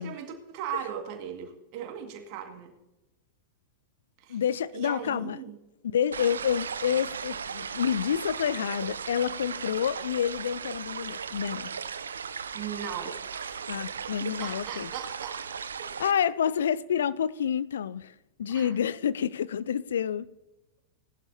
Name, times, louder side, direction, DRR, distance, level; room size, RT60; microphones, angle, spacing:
voice 1, 0.0-2.7 4.2-4.4 4.7-5.6 12.5-13.6 14.4-15.4 18.5-18.7, right 9 dB, 45° right, 2.0 m, -38 dB
voice 2, 4.3-5.4 5.8-11.7 13.7-14.9 16.0-18.1 18.4-20.3, left 8 dB, 65° left, 0.4 m, -28 dB
sound 1, 6.1-16.1, right 6 dB, 70° right, 0.5 m, -37 dB
18.5 x 11.5 x 2.8 m
figure-of-eight pair, 90°, 0 cm